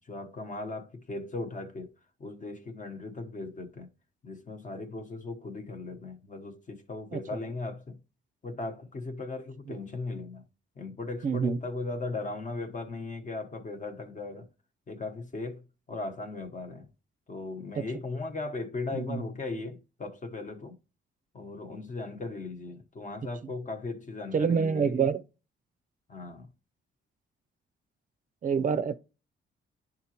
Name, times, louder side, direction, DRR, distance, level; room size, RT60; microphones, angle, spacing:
voice 1, 0.0-3.9 4.2-8.0 8.4-10.4 10.8-14.5 14.9-16.9 17.3-20.7 21.3-25.1 26.1-26.5, left 3 dB, 35° left, 1.0 m, -37 dB
voice 2, 11.2-11.6 18.9-19.2 24.3-25.2 28.4-29.0, right 6 dB, 40° right, 0.5 m, -26 dB
10.5 x 3.9 x 2.9 m
cardioid pair, 95°, 21 cm